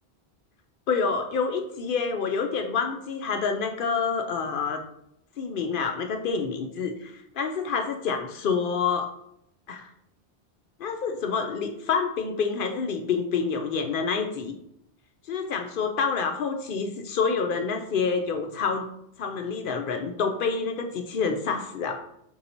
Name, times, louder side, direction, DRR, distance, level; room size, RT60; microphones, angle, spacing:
voice 1, 0.9-4.8 5.4-9.1 9.7-9.9 10.8-14.5 15.3-18.9 19.2-22.0, left 5 dB, 60° left, 5 dB, 0.6 m, -27 dB
4.6 x 2.7 x 4.2 m, 0.75 s
omnidirectional pair, 1.1 m